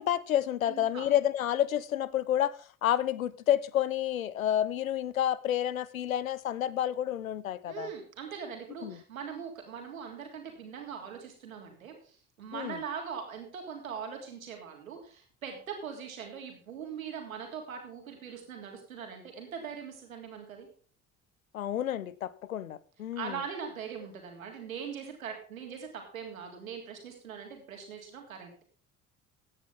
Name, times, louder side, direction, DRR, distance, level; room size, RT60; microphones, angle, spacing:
voice 1, 0.0-7.9 8.8-9.0 12.5-12.8 21.5-23.4, left 11 dB, 80° left, 0.7 m, -30 dB
voice 2, 0.6-1.1 7.7-20.7 23.1-28.6, right 7 dB, 80° right, 3.3 m, -41 dB
16.0 x 10.0 x 3.6 m
figure-of-eight pair, 50°, 40 cm